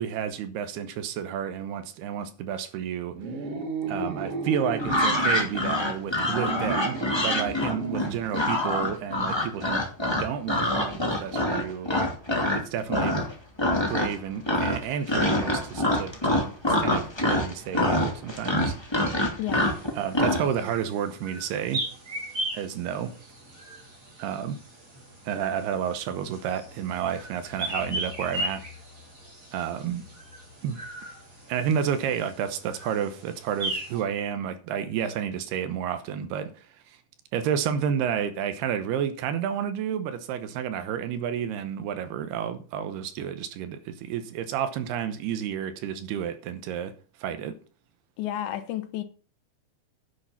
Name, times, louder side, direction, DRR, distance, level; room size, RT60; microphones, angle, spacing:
voice 1, 0.0-3.2 3.9-11.9 12.5-13.3 13.9-16.5 16.8-18.8 20.0-21.8 22.5-23.1 24.2-24.6 25.2-28.6 29.5-30.1 30.6-30.8 31.5-37.0 37.3-46.9 47.2-47.6, right 8 dB, 75° right, 2.8 m, -31 dB
sound 1, 3.1-5.4 6.0-8.2, right 3 dB, 45° right, 2.1 m, -33 dB
sound 2, 4.8-12.6 12.9-13.3 13.6-14.2 14.4-20.4, left 1 dB, 15° left, 0.9 m, -25 dB
voice 2, 19.4-19.7 48.2-49.0, left 12 dB, 85° left, 3.5 m, -31 dB
sound 3, 19.5-34.0, right 1 dB, 20° right, 4.1 m, -38 dB
10.5 x 7.6 x 5.8 m
omnidirectional pair, 5.0 m